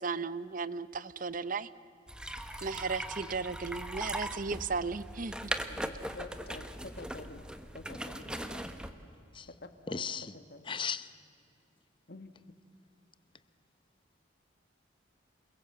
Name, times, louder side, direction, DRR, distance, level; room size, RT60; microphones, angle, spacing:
voice 1, 0.0-1.7 2.6-5.5, right 4 dB, 45° right, 0.7 m, -35 dB
sound 1, 2.1-8.9, right 1 dB, 5° right, 1.0 m, -40 dB
voice 2, 5.7-7.5 7.7-8.7 9.6-10.1 10.3-10.8 12.1-12.3, left 2 dB, 55° left, 1.5 m, -48 dB
voice 3, 9.9-10.3 10.7-11.1, left 6 dB, 25° left, 0.8 m, -36 dB
28.5 x 21.5 x 7.8 m
head